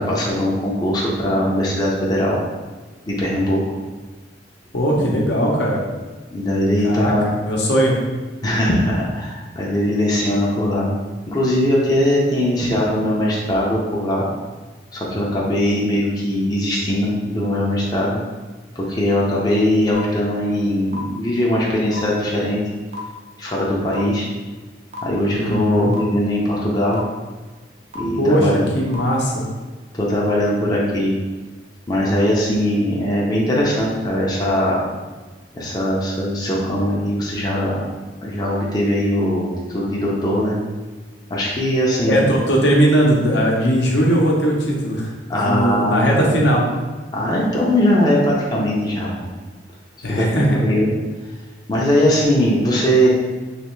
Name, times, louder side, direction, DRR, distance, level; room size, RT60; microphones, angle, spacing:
voice 1, 0.0-2.4 3.1-3.6 5.0-5.1 6.3-7.3 8.4-10.9 11.3-14.3 14.9-18.2 18.8-22.6 23.4-24.3 25.0-27.0 27.9-28.6 29.9-31.1 31.9-34.9 35.5-37.8 38.2-40.6 41.3-42.2 45.3-46.4 47.1-49.1 50.0-50.9 51.7-53.1, equal, 20° left, -5 dB, 0.5 m, -20 dB
voice 2, 4.7-5.8 6.8-7.1 7.4-8.0 25.4-25.9 28.2-29.4 42.1-45.1 45.4-46.6 50.0-50.8, equal, 65° left, -2 dB, 0.7 m, -18 dB
sound 1, 19.9-20.0 20.9-21.0 21.9-22.0 22.9-23.0 23.9-24.0 24.9-25.0 25.9-26.0 26.9-27.0 27.9-28.0 28.9-29.0, equal, 40° right, 0.6 m, -34 dB
3.3 x 3.0 x 3.1 m, 1.3 s
head